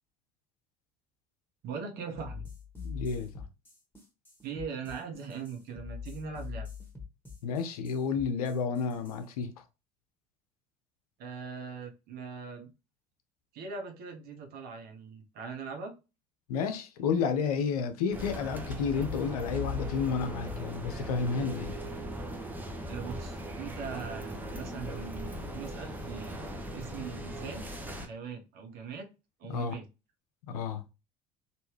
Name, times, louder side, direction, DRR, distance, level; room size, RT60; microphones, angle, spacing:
voice 1, 1.6-2.4 4.4-6.7 11.2-12.7 13.5-15.9 22.9-26.4 26.7-29.1 29.4-29.9, right 5 dB, 50° right, 1.0 m, -41 dB
sound 1, 2.1-9.2, left 5 dB, 10° left, 1.4 m, -44 dB
voice 2, 2.8-3.3 7.4-9.5 16.5-21.7 29.5-29.7 30.5-30.8, left 5 dB, 70° left, 0.6 m, -31 dB
sound 2, 18.1-28.1, left 1 dB, 10° right, 0.9 m, -38 dB
3.3 x 2.6 x 3.1 m
figure-of-eight pair, 60°, 20 cm